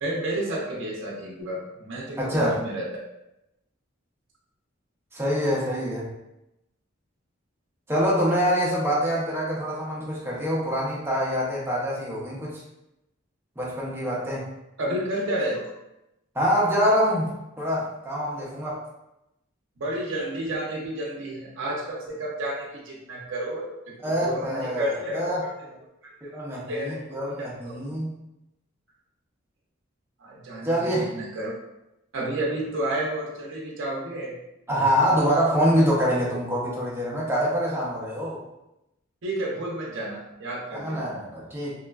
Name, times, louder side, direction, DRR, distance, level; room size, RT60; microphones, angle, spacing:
voice 1, 0.0-2.9 14.8-15.7 19.8-25.3 26.0-27.8 30.2-30.8 31.1-31.5 32.1-34.4 39.2-41.1, right 1 dB, 65° right, -3 dB, 0.6 m, -31 dB
voice 2, 2.2-2.6 5.1-6.1 7.9-12.6 13.6-14.5 16.3-18.8 24.0-24.9 25.1-25.8 26.2-28.2 30.6-31.1 34.7-38.4 40.7-41.8, equal, 10° right, -5 dB, 0.6 m, -25 dB
3.0 x 2.2 x 2.3 m, 0.89 s
head